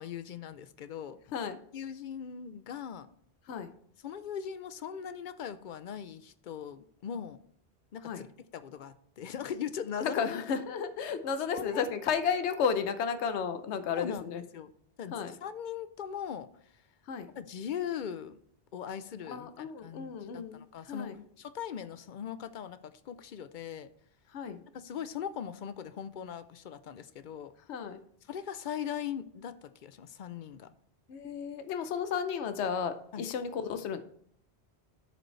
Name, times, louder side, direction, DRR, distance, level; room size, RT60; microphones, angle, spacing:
voice 1, 0.0-1.2 1.7-3.1 4.0-7.4 7.9-8.3 8.5-10.2 11.5-11.8 13.9-14.7 15.0-16.5 17.3-18.4 18.7-21.1 21.4-23.9 24.7-27.5 28.3-30.7 33.1-33.2, left 8 dB, 55° left, 12 dB, 0.6 m, -40 dB
voice 2, 10.0-14.4 15.1-15.3 17.1-17.3 19.3-21.2 24.3-24.6 27.7-28.0 31.1-34.0, left 6 dB, 80° left, 10 dB, 1.0 m, -33 dB
13.0 x 5.2 x 3.2 m, 0.66 s
omnidirectional pair, 1.2 m